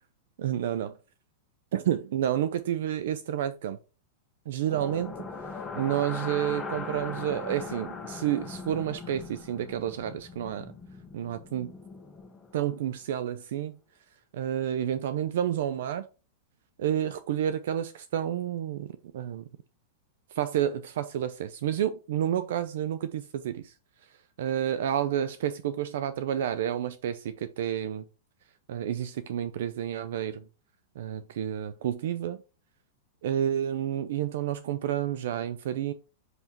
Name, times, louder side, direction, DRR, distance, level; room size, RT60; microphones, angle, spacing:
voice 1, 0.4-1.0 1.7-3.8 4.5-5.2 5.7-10.7 11.1-11.7 12.5-13.8 14.3-16.1 16.8-19.4 20.3-23.7 24.4-28.1 28.7-30.4 31.0-32.4 33.2-35.9, right 10 dB, 70° right, 0.4 m, -30 dB
sound 1, 4.6-12.7, left 4 dB, 15° left, 1.0 m, -40 dB
5.8 x 5.5 x 2.9 m
hypercardioid pair, 120°, 0 cm